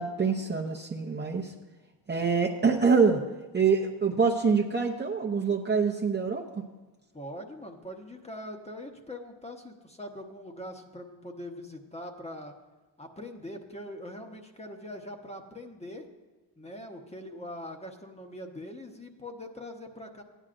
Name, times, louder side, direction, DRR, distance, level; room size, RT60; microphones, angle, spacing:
voice 1, 0.0-1.5 2.1-3.2 3.5-6.6, right 5 dB, 25° right, 0 dB, 0.7 m, -25 dB
voice 2, 7.1-12.5 13.0-16.0 16.6-20.2, left 1 dB, 15° left, 4 dB, 1.0 m, -42 dB
15.0 x 10.0 x 2.6 m, 1.2 s
cardioid pair, 95°, 47 cm